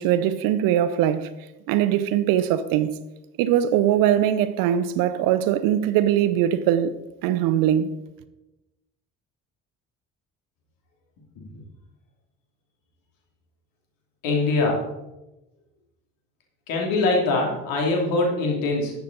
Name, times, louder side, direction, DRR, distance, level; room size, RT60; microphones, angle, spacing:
voice 1, 0.0-1.3 1.7-3.0 3.4-6.9 7.2-7.9, right 11 dB, 75° right, 0.8 m, -21 dB
voice 2, 14.2-14.8 16.7-18.9, left 2 dB, 75° left, 2.9 m, -23 dB
11.5 x 8.1 x 4.0 m
hypercardioid pair, 60°, 34 cm